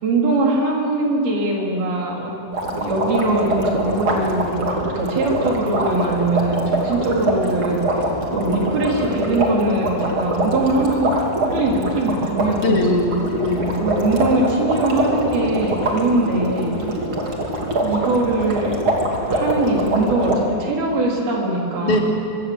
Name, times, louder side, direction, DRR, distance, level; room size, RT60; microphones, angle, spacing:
voice 1, 0.0-2.3 2.7-7.8 8.3-11.1 11.4-13.1 13.8-16.8 17.8-18.7 19.3-22.0, right 2 dB, 85° right, -2 dB, 5.4 m, -21 dB
sound 1, 2.5-20.4, right 1 dB, 35° right, 3.3 m, -23 dB
voice 2, 8.3-8.7 12.6-13.7 16.7-17.0 21.8-22.0, left 2 dB, 55° left, 0 dB, 4.5 m, -22 dB
24.0 x 23.5 x 8.0 m, 2.4 s
omnidirectional pair, 4.2 m